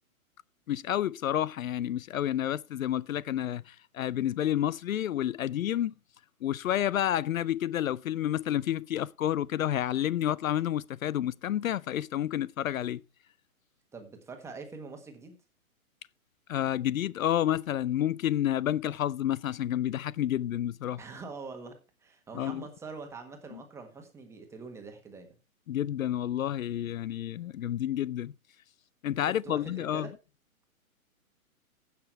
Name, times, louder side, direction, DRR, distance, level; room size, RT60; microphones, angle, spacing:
voice 1, 0.7-5.9 6.4-13.0 16.5-21.0 22.3-22.6 25.7-28.3 29.0-30.1, left 11 dB, 70° left, 0.5 m, -30 dB
voice 2, 13.9-15.4 21.0-21.7 22.0-25.3 29.2-30.1, right 4 dB, 5° right, 1.4 m, -44 dB
15.5 x 5.9 x 4.5 m
hypercardioid pair, 150°, 42 cm